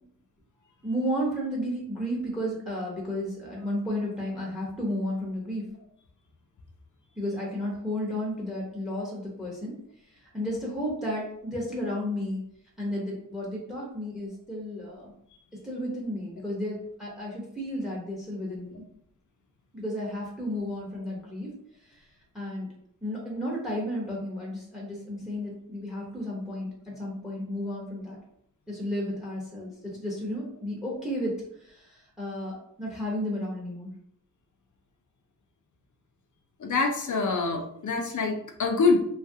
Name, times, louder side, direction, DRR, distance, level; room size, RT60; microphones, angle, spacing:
voice 1, 0.8-5.6 7.2-9.8 10.0-12.5 12.8-15.1 15.6-18.8 19.7-22.7 23.0-28.2 28.7-31.3 31.6-33.9, equal, ahead, -3 dB, 0.8 m, -33 dB
voice 2, 36.6-38.3 38.6-39.0, left 4 dB, 65° left, 3 dB, 0.6 m, -25 dB
2.8 x 2.4 x 2.7 m, 0.71 s
wide cardioid pair, 90°, 32 cm